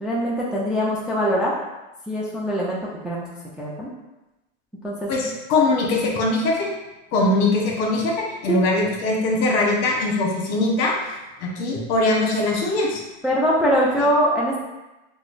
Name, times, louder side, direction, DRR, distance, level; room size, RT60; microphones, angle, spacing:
voice 1, 0.0-1.5 2.1-3.3 3.6-3.9 4.8-5.1 8.5-8.6 13.2-14.6, equal, ahead, -6 dB, 0.4 m, -22 dB
voice 2, 5.1-6.7 7.1-10.9 11.4-13.0, left 2 dB, 55° left, -1 dB, 0.9 m, -21 dB
4.7 x 2.1 x 2.5 m, 1.0 s
supercardioid pair, 125°, 31 cm